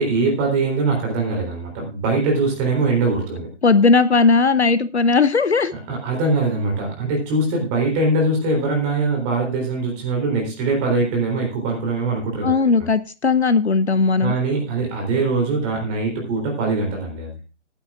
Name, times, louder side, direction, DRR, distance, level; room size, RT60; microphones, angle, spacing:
voice 1, 0.0-3.5 5.7-12.9 14.2-17.4, right 3 dB, 15° right, 0 dB, 3.7 m, -22 dB
voice 2, 3.6-5.7 12.4-14.3, left 4 dB, 60° left, 14 dB, 0.9 m, -17 dB
19.0 x 10.5 x 2.5 m, 0.32 s
figure-of-eight pair, 145°, 36 cm